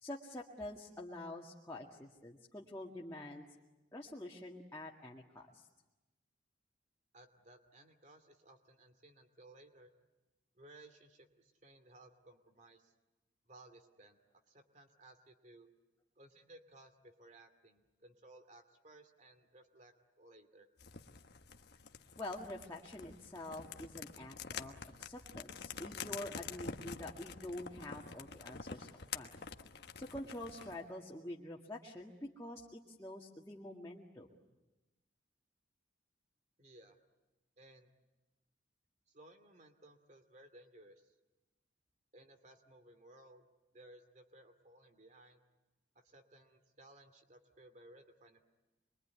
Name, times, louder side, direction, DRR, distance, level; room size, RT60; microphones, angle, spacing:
voice 1, 0.0-3.4 3.9-5.7 22.2-24.7 25.0-28.9 29.1-29.3 29.9-34.3, left 1 dB, 15° left, -3 dB, 1.9 m, -47 dB
voice 2, 7.1-9.9 10.5-12.9 13.4-14.2 14.5-15.7 16.2-20.7 36.6-37.0 37.6-37.9 39.1-41.2 42.1-43.4 43.7-45.4 45.9-48.4, right 1 dB, 40° right, 8 dB, 2.5 m, -60 dB
sound 1, 20.8-30.8, left 5 dB, 55° left, 1.3 m, -48 dB
27.0 x 22.5 x 9.5 m, 1.1 s
head